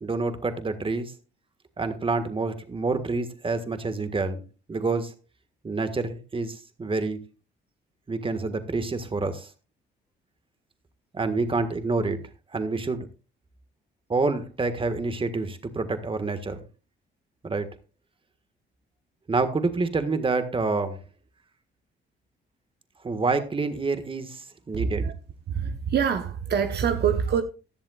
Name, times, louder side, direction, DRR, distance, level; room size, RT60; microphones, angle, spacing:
voice 1, 0.0-1.1 1.8-4.4 4.7-5.1 5.6-7.2 8.1-9.5 11.1-12.2 12.5-13.1 14.1-16.6 17.4-17.7 19.3-21.0 23.0-25.1, right 3 dB, 25° right, 1.7 m, -27 dB
voice 2, 24.7-25.1 25.5-27.4, right 7 dB, 55° right, 1.1 m, -25 dB
15.5 x 11.0 x 2.4 m
cardioid pair, 90°, 20 cm